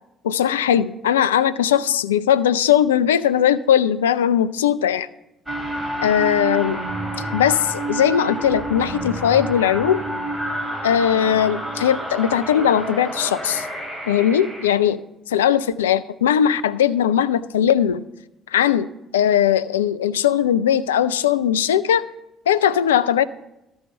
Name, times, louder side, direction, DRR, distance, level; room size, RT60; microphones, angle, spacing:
voice 1, 0.2-5.1 6.0-6.8 7.3-10.0 10.8-13.7 14.1-15.0 15.3-18.0 18.5-22.0 22.5-23.2, left 9 dB, 80° left, 14 dB, 0.3 m, -19 dB
sound 1, 5.5-14.7, right 1 dB, 10° right, 4.0 m, -29 dB
12.5 x 5.5 x 6.5 m, 0.89 s
figure-of-eight pair, 50°, 0 cm